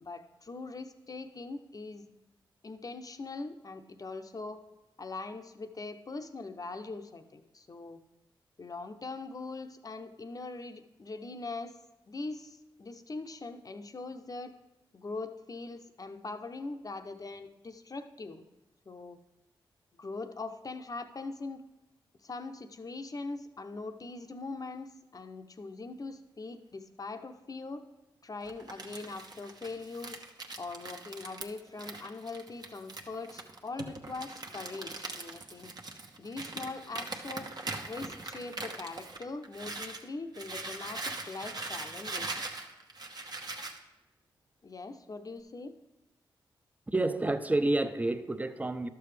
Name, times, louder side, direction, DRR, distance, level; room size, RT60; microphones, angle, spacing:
voice 1, 0.0-2.1 2.6-4.6 5.0-8.0 8.6-11.7 12.1-14.5 14.9-18.4 18.9-19.2 20.0-21.6 22.2-27.8 28.2-30.2 30.6-35.7 36.2-37.5 37.8-42.4 44.6-45.7, left 3 dB, 45° left, 0.8 m, -41 dB
Crumpling crinkling, 28.4-40.0 40.3-43.8, right 3 dB, 50° right, 1.0 m, -41 dB
voice 2, 46.9-48.9, right 2 dB, 15° right, 0.6 m, -29 dB
12.0 x 6.9 x 3.3 m
cardioid pair, 50°, 9 cm